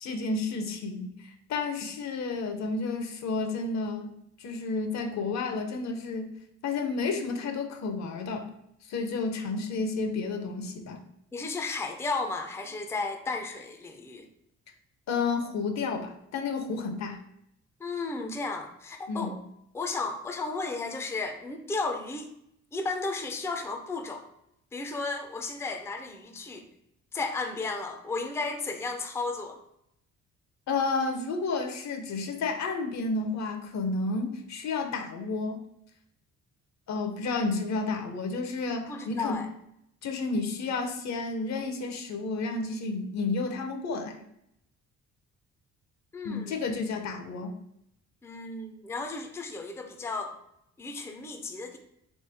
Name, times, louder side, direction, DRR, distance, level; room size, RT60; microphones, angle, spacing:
voice 1, 0.0-1.1 1.5-4.1 4.4-6.3 6.6-8.5 8.9-11.0 15.1-17.2 19.1-19.3 30.7-35.6 36.9-39.4 40.0-44.2 46.2-47.6, left 3 dB, 65° left, 5 dB, 0.7 m, -31 dB
voice 2, 11.3-14.3 17.8-19.4 19.7-22.3 22.7-24.3 24.7-26.7 27.1-29.6 38.9-39.5 46.1-46.6 48.2-50.4 50.8-51.8, left 3 dB, 10° left, 5 dB, 0.4 m, -34 dB
3.5 x 3.2 x 3.4 m, 0.77 s
cardioid pair, 90°, 30 cm